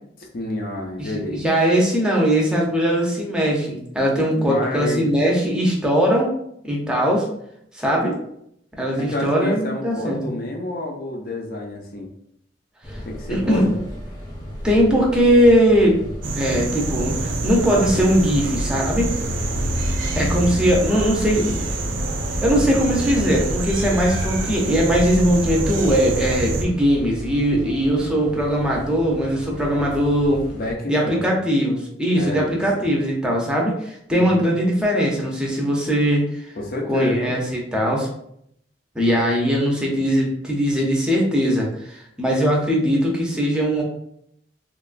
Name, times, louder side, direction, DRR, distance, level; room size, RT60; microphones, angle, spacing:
voice 1, 0.2-1.4 4.4-5.1 9.0-12.1 13.0-13.8 30.5-31.2 32.2-32.9 34.1-34.5 36.6-37.4, left 1 dB, 50° left, 1 dB, 0.5 m, -29 dB
voice 2, 1.0-6.3 6.6-7.2 7.7-8.2 8.8-10.2 13.3-13.6 14.6-16.0 16.3-19.1 20.1-21.9 22.4-30.4 30.9-36.4 36.9-38.1 38.9-43.8, equal, 5° right, -2 dB, 0.6 m, -20 dB
sound 1, 12.8-30.7, equal, 25° left, 0.8 m, -35 dB
sound 2, 16.2-26.6, right 2 dB, 80° right, 0.4 m, -26 dB
3.1 x 2.3 x 2.4 m, 0.73 s
head